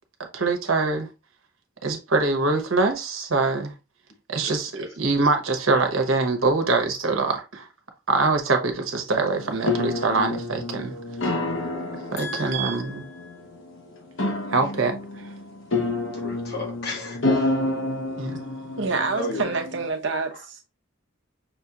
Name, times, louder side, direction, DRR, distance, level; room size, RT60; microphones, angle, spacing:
voice 1, 0.3-1.1 1.8-3.7 4.3-7.7 8.1-10.9 12.1-13.0 14.5-15.3 18.2-18.4, right 3 dB, 80° right, 1.0 m, -24 dB
sound 1, 9.3-19.9, left 2 dB, 75° left, 1.1 m, -29 dB
voice 2, 12.2-13.4 14.6-14.7 16.1-17.5 19.1-19.6, left 2 dB, 50° left, 1.1 m, -35 dB
voice 3, 18.8-20.7, right 4 dB, 60° right, 0.8 m, -27 dB
6.0 x 2.9 x 2.4 m
head